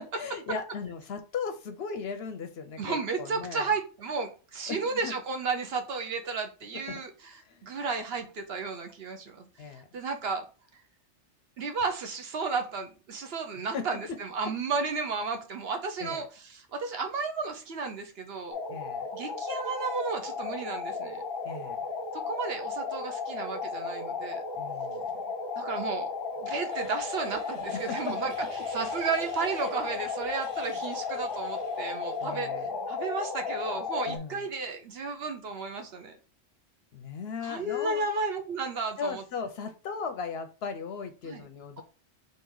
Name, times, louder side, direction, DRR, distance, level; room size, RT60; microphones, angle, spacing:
voice 1, 0.0-3.7 4.7-5.1 6.9-7.0 7.4-7.7 9.6-9.9 13.7-14.2 16.0-16.3 18.7-19.1 21.4-21.8 24.6-25.0 27.9-28.5 32.2-32.7 34.1-34.4 36.9-38.1 39.0-41.8, left 5 dB, 65° left, 8 dB, 0.8 m, -37 dB
voice 2, 2.8-10.4 11.6-18.6 19.1-21.2 22.3-24.4 25.6-26.1 26.4-28.3 28.7-32.5 32.9-36.2 37.4-39.2 41.2-41.5, right 4 dB, 60° right, 6 dB, 0.9 m, -33 dB
sound 1, 18.5-34.2, left 4 dB, 25° left, 0.7 m, -34 dB
sound 2, 26.7-32.4, right 1 dB, 75° right, 1.7 m, -53 dB
3.7 x 2.7 x 4.6 m, 0.34 s
omnidirectional pair, 1.3 m